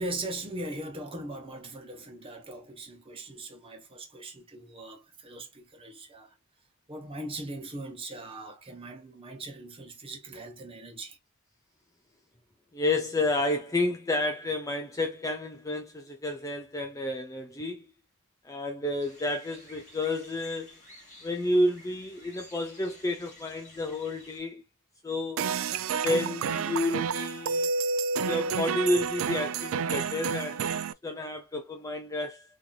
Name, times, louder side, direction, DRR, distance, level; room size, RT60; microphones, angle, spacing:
voice 1, 0.0-6.3 6.9-11.2, right 1 dB, 25° right, 1.0 m, -40 dB
voice 2, 12.7-17.8 18.4-20.8 21.2-24.6 25.0-25.4 26.0-27.7 28.3-32.4, left 2 dB, 15° left, 0.4 m, -30 dB
sound 1, 19.0-24.4, left 1 dB, 35° left, 2.1 m, -53 dB
sound 2, 25.4-30.9, right 5 dB, 65° right, 0.3 m, -30 dB
3.9 x 2.9 x 2.3 m
head